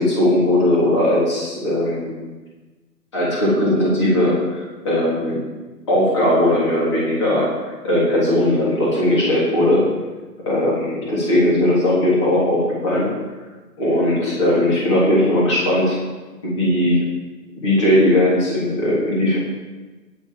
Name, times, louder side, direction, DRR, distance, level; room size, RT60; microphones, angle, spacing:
voice 1, 0.0-2.1 3.1-4.4 4.8-5.4 5.9-9.8 10.5-13.1 13.8-16.0 16.4-17.0 17.6-19.4, left 1 dB, 15° left, -6 dB, 3.4 m, -18 dB
10.0 x 8.7 x 7.5 m, 1.2 s
hypercardioid pair, 175°, 50 cm